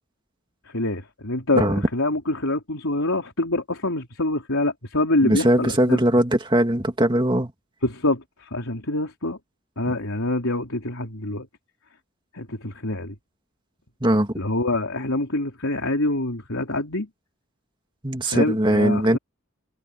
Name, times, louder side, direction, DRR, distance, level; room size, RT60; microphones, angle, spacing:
voice 1, 0.7-6.0 7.8-9.4 9.8-11.5 12.3-13.1 14.4-17.1 18.2-19.2, left 2 dB, 80° left, 4.0 m, -25 dB
voice 2, 5.2-7.5 14.0-14.3 18.0-19.2, right 1 dB, 20° right, 2.3 m, -20 dB
head